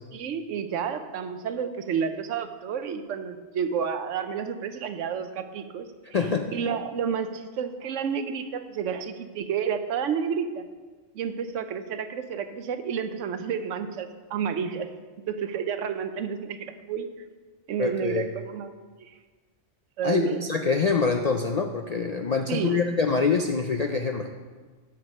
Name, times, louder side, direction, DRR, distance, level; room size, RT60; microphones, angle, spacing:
voice 1, 0.1-5.9 6.5-10.7 11.1-14.9 15.3-17.1 17.7-18.7 19.1-19.2 20.0-20.4 22.5-22.8, right 7 dB, 80° right, 10 dB, 1.0 m, -30 dB
voice 2, 6.1-6.5 17.8-18.3 20.0-24.3, left 5 dB, 60° left, 4 dB, 0.4 m, -25 dB
9.3 x 6.8 x 5.3 m, 1.4 s
omnidirectional pair, 1.3 m